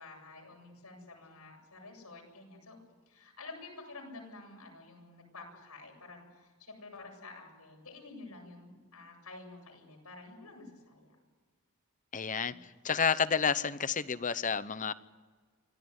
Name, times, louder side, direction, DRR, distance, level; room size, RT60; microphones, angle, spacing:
voice 1, 0.0-2.8 3.1-11.2 12.5-12.6, left 3 dB, 90° left, 1 dB, 7.9 m, -50 dB
voice 2, 12.1-12.5 12.8-14.9, left 6 dB, 35° left, 14 dB, 0.8 m, -30 dB
25.0 x 16.0 x 9.6 m, 1.5 s
head